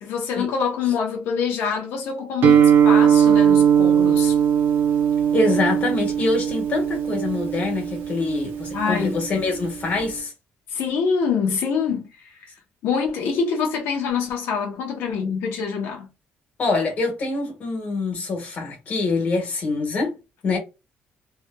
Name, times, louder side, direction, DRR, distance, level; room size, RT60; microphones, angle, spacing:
voice 1, 0.0-4.4 8.7-9.2 10.7-12.5 12.8-16.1, left 6 dB, 90° left, 0.8 m, -25 dB
Guitar, 2.4-10.2, right 8 dB, 65° right, 0.6 m, -19 dB
voice 2, 5.3-10.3 16.6-20.1 20.4-20.6, left 3 dB, 40° left, 1.5 m, -25 dB
3.2 x 2.8 x 2.2 m
cardioid pair, 165°, 4 cm